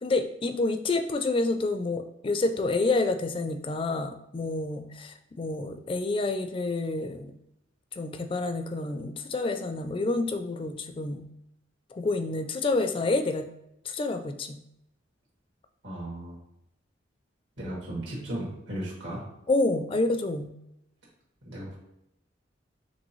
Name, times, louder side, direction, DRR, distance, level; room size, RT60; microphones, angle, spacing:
voice 1, 0.0-7.3 7.9-11.2 11.9-13.5 13.9-14.6 19.5-20.5, left 2 dB, 30° left, 7 dB, 0.4 m, -28 dB
voice 2, 15.8-16.4 17.6-19.2 21.4-21.8, right 1 dB, 80° right, -5 dB, 1.8 m, -36 dB
5.3 x 3.3 x 3.1 m, 0.83 s
head